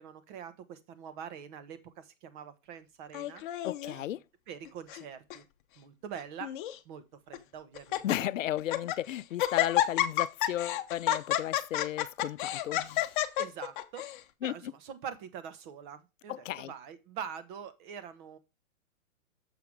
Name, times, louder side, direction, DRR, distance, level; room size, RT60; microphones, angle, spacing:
voice 1, 0.0-3.4 3.8-4.1 4.5-5.5 5.8-6.5 6.8-8.3 13.4-14.1 14.4-18.4, right 8 dB, 35° right, 1.3 m, -44 dB
Laughter, 3.1-4.0 4.7-5.0 5.3-5.4 6.2-6.8 7.3-7.4 7.8-8.2 8.6-9.0 9.4-14.2, left 13 dB, 40° left, 0.9 m, -30 dB
voice 2, 3.6-4.2 8.0-13.2 14.4-14.7 16.3-16.7, left 13 dB, 70° left, 0.6 m, -34 dB
7.1 x 5.7 x 4.9 m
hypercardioid pair, 135°, 40 cm